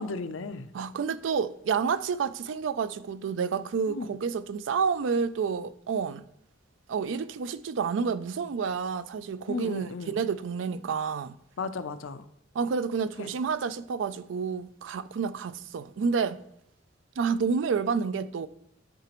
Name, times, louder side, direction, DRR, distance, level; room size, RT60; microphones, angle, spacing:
voice 1, 0.0-0.7 3.9-4.1 9.5-10.2 11.6-12.3 13.2-13.3, left 4 dB, 85° left, 0.5 m, -35 dB
voice 2, 0.7-6.2 6.9-11.3 12.5-16.4 17.2-18.5, right 5 dB, 75° right, 0.4 m, -29 dB
11.5 x 4.9 x 3.0 m
head